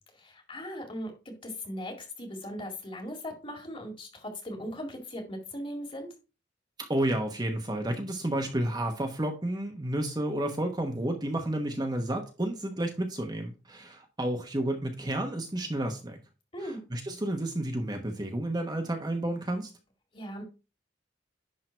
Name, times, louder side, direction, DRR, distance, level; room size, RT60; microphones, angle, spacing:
voice 1, 0.2-1.1 1.4-6.1 16.5-16.8 20.1-20.4, equal, 30° left, 2.2 m, -38 dB
voice 2, 6.9-16.2 16.6-19.7, right 1 dB, 25° right, 1.1 m, -31 dB
10.5 x 3.7 x 4.5 m
head